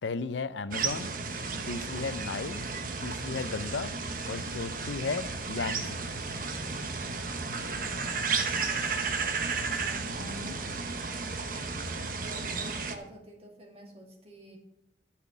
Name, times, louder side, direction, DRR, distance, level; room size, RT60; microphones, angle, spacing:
voice 1, 0.0-1.1 1.6-2.6 3.0-3.9 4.3-6.0 10.2-10.6, left 4 dB, 85° left, 14 dB, 0.6 m, -35 dB
sound 1, 0.7-13.0, right 4 dB, 50° right, 1.1 m, -33 dB
voice 2, 8.3-9.1 9.6-10.9 12.2-14.6, right 1 dB, 35° right, 1 dB, 2.3 m, -49 dB
12.0 x 5.9 x 7.2 m, 0.83 s
head